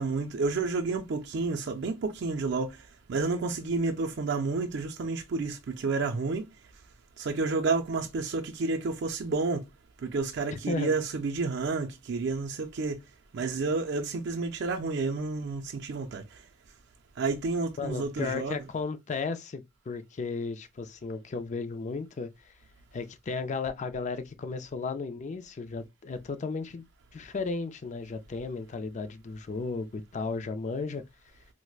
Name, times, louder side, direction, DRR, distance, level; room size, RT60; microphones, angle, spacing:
voice 1, 0.0-2.7 3.1-6.4 7.2-9.6 10.0-13.0 13.3-16.2 17.2-18.6, right 3 dB, 60° right, 0.4 m, -30 dB
voice 2, 10.5-10.9 17.8-22.5 22.9-26.8 27.1-31.0, left 4 dB, 35° left, 0.4 m, -34 dB
4.5 x 2.0 x 2.3 m
head